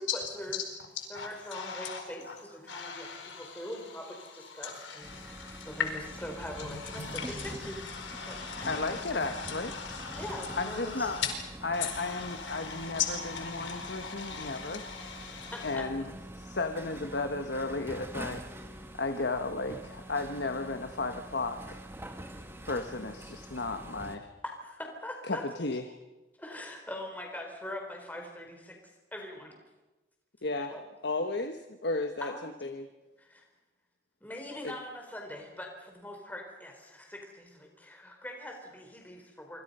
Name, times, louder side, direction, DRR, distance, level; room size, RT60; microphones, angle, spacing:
voice 1, 0.1-0.6 1.1-3.1 3.4-5.4 5.7-5.9 6.2-7.4 7.7-7.8 8.3-8.9 10.2-11.2 15.5-15.8 24.4-25.4 26.4-28.8 29.1-29.6 30.7-30.8 32.2-32.5 33.2-33.4 34.2-39.6, left 1 dB, 10° left, 2 dB, 4.4 m, -42 dB
voice 2, 0.9-2.3 2.7-11.3 11.7-15.7, left 7 dB, 85° left, 4 dB, 4.9 m, -39 dB
sound 1, 5.0-24.2, right 1 dB, 10° right, 1.9 m, -45 dB
voice 3, 8.6-9.7 10.6-11.2 11.6-14.8 15.6-16.1 16.3-18.4 19.0-21.8 22.7-24.3 25.3-26.0 30.4-30.7 31.0-32.9 34.6-34.7, left 3 dB, 65° left, 6 dB, 1.3 m, -34 dB
26.0 x 26.0 x 5.6 m, 1.1 s
head